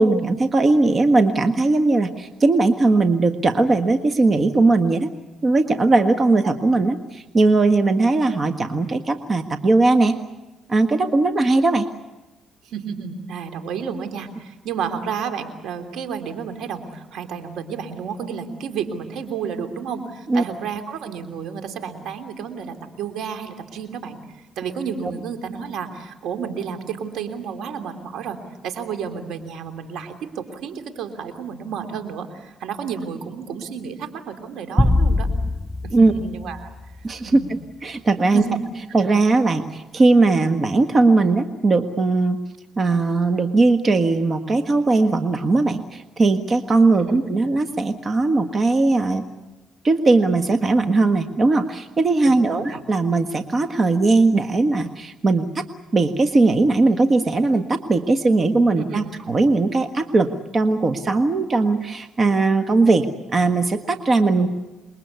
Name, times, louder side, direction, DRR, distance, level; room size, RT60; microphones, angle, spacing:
voice 1, 0.0-5.1 5.4-10.2 10.7-11.9 20.3-20.4 35.9-36.1 37.0-37.4 37.8-38.4 38.9-42.4 42.8-49.2 49.8-55.6 55.9-64.5, right 3 dB, 35° right, 7 dB, 1.6 m, -19 dB
voice 2, 12.6-28.4 28.6-35.3 35.8-36.7 37.3-37.5 38.3-38.6 47.0-47.3 52.2-52.8 58.7-59.1 64.4-64.5, right 6 dB, 80° right, 7 dB, 3.2 m, -31 dB
sound 1, 34.8-37.3, left 2 dB, 10° left, 0.8 m, -22 dB
28.0 x 22.0 x 8.3 m, 1.1 s
cardioid pair, 90°, 0 cm